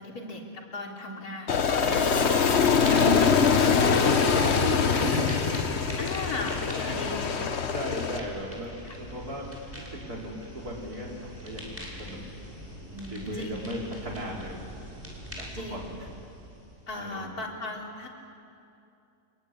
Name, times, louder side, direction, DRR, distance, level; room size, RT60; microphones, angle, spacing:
voice 1, 0.0-2.4 2.9-3.3 3.8-4.0 6.0-7.5 8.8-9.0 12.9-13.6 15.5-15.8 16.9-18.1, left 2 dB, 85° left, -1 dB, 3.9 m, -37 dB
Aircraft, 1.5-8.2, left 6 dB, 50° left, 1.3 m, -24 dB
sound 1, 1.5-1.9 2.1-17.1, equal, 10° right, 6.1 m, -42 dB
voice 2, 1.8-2.3 2.8-3.2 3.7-5.4 6.8-7.0 7.4-9.4 9.8-12.4 12.8-14.6 15.4-15.8 16.9-17.3, equal, 85° right, -2 dB, 5.0 m, -35 dB
26.0 x 22.5 x 9.8 m, 2.7 s
omnidirectional pair, 1.6 m